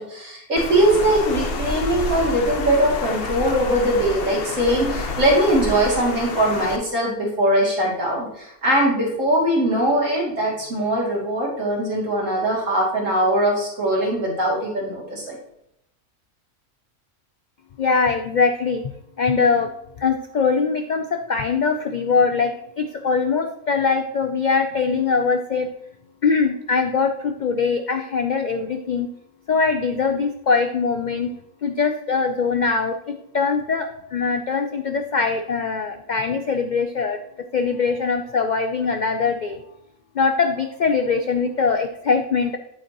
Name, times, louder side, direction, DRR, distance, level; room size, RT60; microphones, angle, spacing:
voice 1, 0.0-15.4, right 1 dB, 60° right, -3 dB, 3.0 m, -21 dB
Water, 0.6-6.8, left 4 dB, 50° left, 0.9 m, -29 dB
voice 2, 17.8-18.8 19.2-19.7 20.0-25.7 26.2-29.1 29.5-31.3 31.6-37.2 37.5-39.6 40.1-42.6, left 5 dB, 75° left, 6 dB, 0.4 m, -22 dB
9.1 x 7.5 x 2.9 m, 0.79 s
omnidirectional pair, 1.5 m